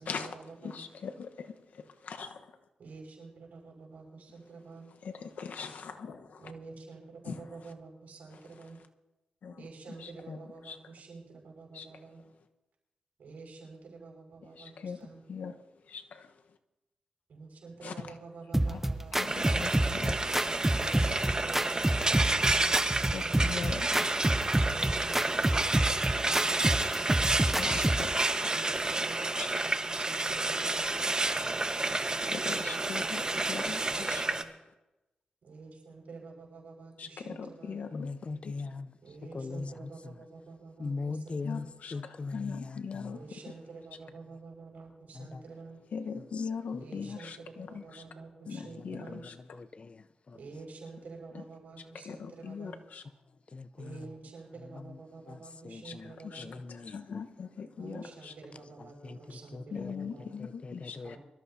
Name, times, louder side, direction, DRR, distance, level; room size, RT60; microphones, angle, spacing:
voice 1, 0.0-0.8 2.8-4.9 6.4-8.8 9.6-12.2 13.2-15.2 17.3-19.7 20.7-23.6 24.6-27.2 28.5-31.0 31.9-34.5 35.4-37.8 39.0-41.6 43.1-45.8 46.8-49.3 50.3-52.8 53.8-56.5 57.8-60.3 61.0-61.2, right 4 dB, 75° right, 5.6 m, -48 dB
voice 2, 0.6-1.5 2.0-2.4 5.0-6.4 7.3-7.4 9.4-9.6 10.3-10.4 10.7-10.8 11.7-11.8 14.8-15.0 15.3-15.5 15.9-16.3 17.8-17.9 19.2-19.7 20.0-20.1 23.1-24.5 27.6-28.5 32.3-33.2 33.5-33.8 34.1-34.4 37.0-38.1 38.4-38.5 41.4-43.2 45.9-48.0 48.5-49.3 52.0-53.0 55.8-55.9 56.3-56.4 56.9-58.3 59.7-61.0, left 6 dB, 75° left, 1.1 m, -40 dB
sound 1, 18.5-28.1, right 1 dB, 10° right, 0.8 m, -29 dB
Frying (food), 19.3-34.4, right 2 dB, 30° right, 1.2 m, -30 dB
voice 3, 37.9-38.9 39.3-39.7 40.8-43.1 45.2-45.4 46.3-46.4 46.7-47.1 49.1-49.2 49.5-50.4 53.5-54.0 55.3-55.4 55.6-56.1 56.4-57.2 59.0-59.2 59.5-59.9 60.4-61.2, left 3 dB, 45° left, 0.6 m, -40 dB
24.0 x 13.5 x 2.8 m
cardioid pair, 55°, 3 cm